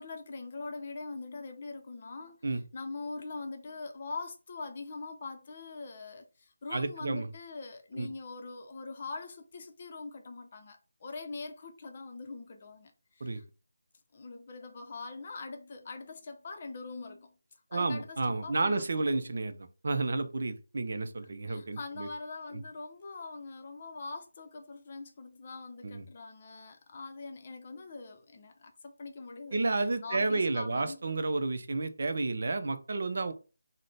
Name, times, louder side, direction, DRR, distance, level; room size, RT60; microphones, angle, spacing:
voice 1, 0.0-2.4 2.7-13.4 14.1-17.3 17.7-19.1 21.5-31.0, left 3 dB, 35° left, 0.6 m, -43 dB
voice 2, 6.7-7.3 7.9-8.1 13.2-13.4 17.7-22.1 22.5-22.6 25.8-26.0 29.5-33.3, right 3 dB, 55° right, 0.5 m, -31 dB
3.8 x 2.1 x 3.2 m
figure-of-eight pair, 160°, 0 cm